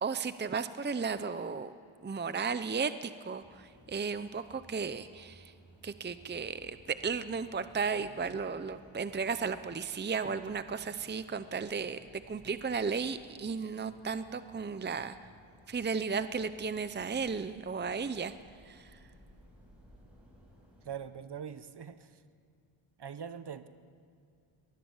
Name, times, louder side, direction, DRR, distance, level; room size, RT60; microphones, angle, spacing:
voice 1, 0.0-1.7 2.0-5.5 5.8-15.2 15.7-19.0, right 5 dB, 20° right, 12 dB, 0.7 m, -35 dB
sound 1, 3.4-21.0, equal, 5° right, 7.9 m, -59 dB
voice 2, 20.8-22.2 23.0-23.7, right 7 dB, 50° right, 12 dB, 1.2 m, -42 dB
23.0 x 20.0 x 7.2 m, 2.4 s
cardioid pair, 85°, 50 cm